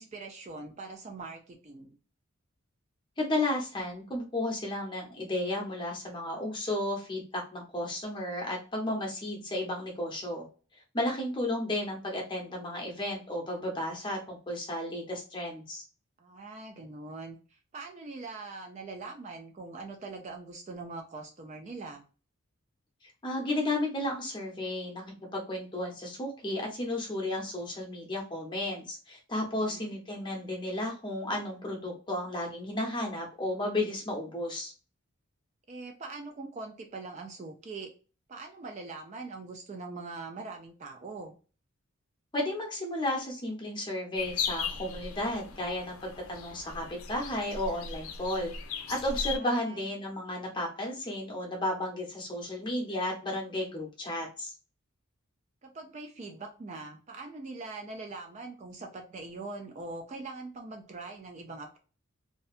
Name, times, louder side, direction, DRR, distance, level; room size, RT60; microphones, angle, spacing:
voice 1, 0.0-1.9 16.2-22.0 29.5-29.9 35.7-37.9 38.3-41.3 49.3-49.8 55.6-61.8, right 3 dB, 30° right, 3 dB, 0.3 m, -42 dB
voice 2, 3.2-10.4 10.9-15.8 23.2-34.7 42.3-54.5, left 1 dB, 20° left, 0 dB, 0.7 m, -33 dB
sound 1, 44.2-49.4, left 6 dB, 80° left, 0.5 m, -37 dB
2.6 x 2.2 x 2.4 m, 0.36 s
head